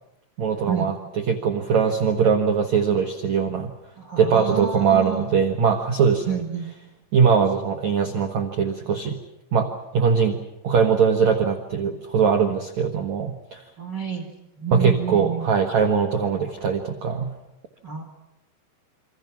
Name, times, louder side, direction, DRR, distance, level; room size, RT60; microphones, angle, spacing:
voice 1, 0.4-0.9 1.3-3.7 4.2-6.4 7.1-9.2 9.5-13.6 14.7-17.3, right 6 dB, 90° right, 4 dB, 1.5 m, -21 dB
voice 2, 4.0-5.3 6.3-6.7 13.8-14.3 14.6-15.5 17.8-18.0, right 7 dB, 55° right, 6 dB, 1.2 m, -28 dB
27.5 x 25.5 x 6.0 m, 0.93 s
omnidirectional pair, 5.6 m